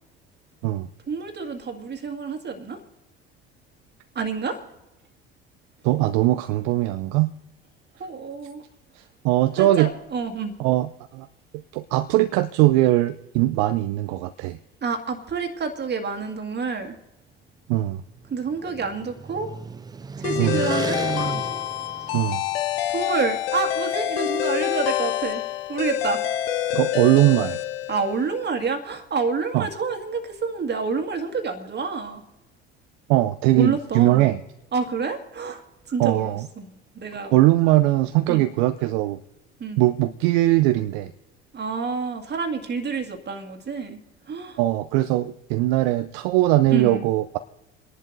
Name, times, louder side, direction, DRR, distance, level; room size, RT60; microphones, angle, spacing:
voice 1, 1.1-2.8 4.2-4.7 8.0-8.6 9.6-10.5 14.8-17.0 18.3-19.5 20.2-21.1 22.9-25.4 25.7-26.2 27.9-32.2 33.5-34.3 34.7-37.4 38.3-38.4 39.6-39.8 41.5-44.0 44.3-44.6 46.7-47.1, right 5 dB, 35° right, 5 dB, 2.0 m, -28 dB
voice 2, 5.8-7.3 9.0-9.9 10.6-11.3 11.7-14.6 17.7-18.0 20.4-20.6 22.1-22.4 26.7-27.6 29.5-29.7 33.1-34.4 36.0-36.5 37.3-39.2 39.8-41.1 44.6-47.4, right 16 dB, 65° right, 10 dB, 0.5 m, -20 dB
sound 1, 18.0-22.8, right 6 dB, 15° right, 0.3 m, -33 dB
sound 2, 20.2-28.4, left 12 dB, 75° left, 0.8 m, -27 dB
29.0 x 11.0 x 2.7 m, 1.0 s
hypercardioid pair, 65°, 30 cm